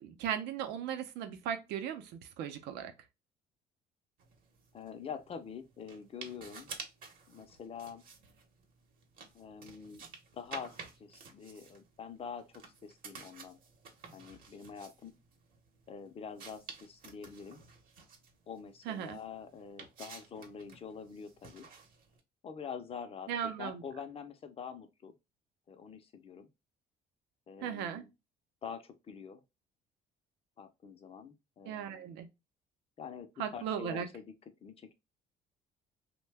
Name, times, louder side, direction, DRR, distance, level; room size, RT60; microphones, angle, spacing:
voice 1, 0.0-2.9 18.9-19.2 23.3-23.8 27.6-28.0 31.7-32.3 33.4-34.1, right 9 dB, 85° right, 0.5 m, -37 dB
sound 1, 4.2-22.2, right 5 dB, 55° right, 0.8 m, -52 dB
voice 2, 4.7-6.7 7.3-8.0 9.3-10.0 10.3-13.6 14.1-15.1 15.9-17.6 18.5-21.7 22.4-25.1 25.7-26.5 27.5-28.1 28.6-29.4 30.6-32.0 33.0-34.3 34.6-34.9, left 6 dB, 35° left, 0.5 m, -46 dB
2.7 x 2.2 x 3.3 m
cardioid pair, 110°, 17 cm